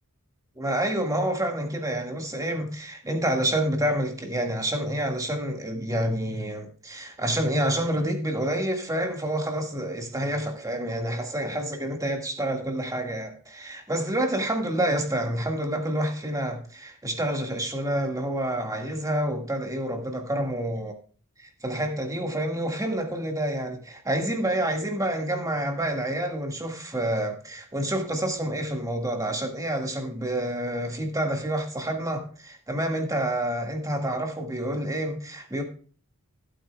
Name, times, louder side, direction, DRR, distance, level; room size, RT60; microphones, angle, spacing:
voice 1, 0.6-20.9 21.4-35.6, right 1 dB, 15° right, 3 dB, 1.8 m, -28 dB
15.5 x 8.8 x 2.3 m, 0.42 s
head